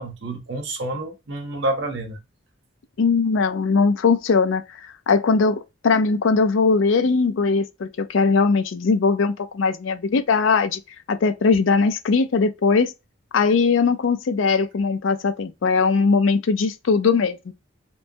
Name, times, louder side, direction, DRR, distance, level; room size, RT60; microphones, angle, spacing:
voice 1, 0.0-2.2, right 1 dB, 65° right, 0.8 m, -28 dB
voice 2, 3.0-4.6 5.1-10.8 11.1-12.9 13.3-17.5, left 4 dB, 75° left, 0.4 m, -20 dB
3.0 x 2.1 x 2.6 m
head